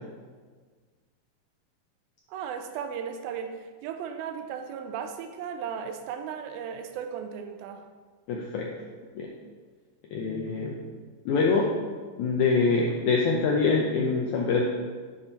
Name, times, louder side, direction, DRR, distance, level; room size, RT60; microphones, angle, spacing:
voice 1, 2.3-3.6 3.8-7.8, right 7 dB, 85° right, 6 dB, 2.4 m, -36 dB
voice 2, 8.3-8.7 9.1-9.3 10.1-10.8 11.2-11.7 12.2-14.6, left 4 dB, 80° left, -1 dB, 1.7 m, -24 dB
10.5 x 4.2 x 4.4 m, 1.5 s
omnidirectional pair, 4.2 m